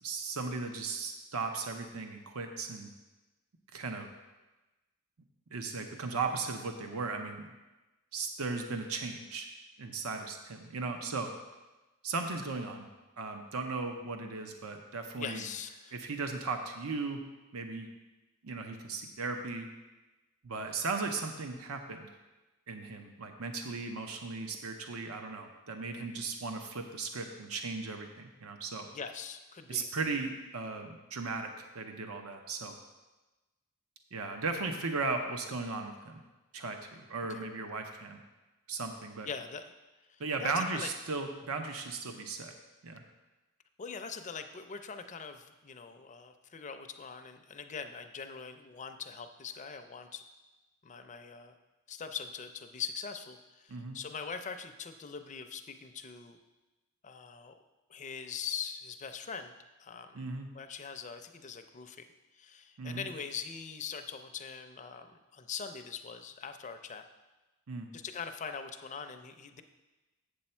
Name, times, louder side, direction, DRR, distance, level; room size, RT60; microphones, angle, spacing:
voice 1, 0.0-2.9 3.7-4.1 5.5-7.5 8.1-9.5 9.8-11.3 12.0-12.9 13.2-15.4 15.9-17.2 17.5-17.9 18.4-19.7 20.4-22.1 22.7-28.9 29.7-32.8 34.1-36.2 36.5-38.2 38.7-39.3 40.2-42.5 42.8-43.0 53.7-54.0 60.1-60.5 62.8-63.1 67.7-67.9, right 4 dB, 75° right, 5 dB, 0.7 m, -37 dB
voice 2, 15.2-15.9 28.9-29.9 30.1-30.2 37.3-37.4 39.2-39.6 40.1-40.9 42.1-42.2 43.8-50.2 50.8-51.5 51.9-56.4 57.0-57.5 57.9-59.5 59.8-60.2 60.5-62.1 62.4-67.0 67.9-69.6, left 6 dB, 35° left, 7 dB, 0.5 m, -42 dB
7.8 x 7.1 x 4.3 m, 1.1 s
head